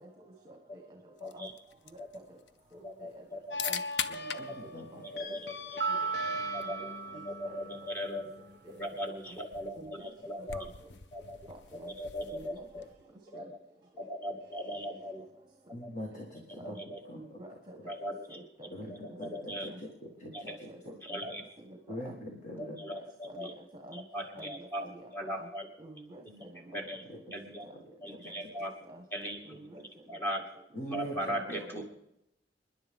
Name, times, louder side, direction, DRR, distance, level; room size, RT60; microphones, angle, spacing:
voice 1, 0.4-0.8 1.3-1.5 1.9-2.2 2.7-3.2 3.6-3.8 4.1-4.5 4.7-5.0 5.9-6.0 6.6-6.7 7.1-7.5 8.6-9.0 9.8-10.1 10.4-10.5 11.5-11.9 12.3-12.6 13.3-13.5 16.6-16.8 17.1-17.8 18.0-18.9 19.7-19.8 20.2-20.8 21.7-22.2 22.5-24.0 24.4-25.5 25.8-26.8 28.1-28.4 28.9-29.0 29.4-29.8 31.0-31.5 31.7-31.8, right 1 dB, 25° right, 2 dB, 1.5 m, -49 dB
sound 1, 1.2-13.1, left 7 dB, 90° left, 0.7 m, -44 dB
voice 2, 1.2-1.5 2.0-2.1 2.8-3.7 5.1-6.0 6.5-6.9 7.2-8.3 8.8-10.7 11.1-11.4 11.8-12.8 13.3-13.4 14.0-15.2 15.8-15.9 16.8-17.0 17.9-18.4 18.9-19.7 20.3-20.6 21.0-21.4 22.6-23.5 23.9-24.8 25.1-25.7 26.3-26.4 26.7-27.0 27.3-27.7 28.0-28.7 29.1-29.6 30.1-30.4 30.8-31.8, equal, 10° left, 0 dB, 2.1 m, -39 dB
sound 2, 3.5-8.6, left 2 dB, 65° left, 1.1 m, -41 dB
voice 3, 4.4-5.0 15.7-16.8 17.1-17.4 18.7-19.9 20.2-20.9 21.9-22.8 27.0-27.2 27.7-27.8 30.7-31.8, equal, 45° left, 1 dB, 1.7 m, -42 dB
sound 3, 5.8-8.3, right 7 dB, 60° right, 0.5 m, -37 dB
29.5 x 10.5 x 3.7 m, 0.84 s
head